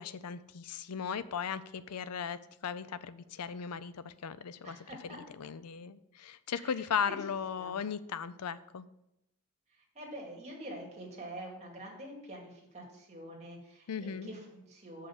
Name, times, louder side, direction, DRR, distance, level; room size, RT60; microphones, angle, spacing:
voice 1, 0.0-8.9 13.9-14.3, left 7 dB, 90° left, 15 dB, 0.5 m, -37 dB
voice 2, 4.6-5.2 6.5-7.7 9.7-15.1, right 1 dB, 30° right, -2 dB, 2.3 m, -46 dB
6.5 x 5.6 x 7.2 m, 0.83 s
head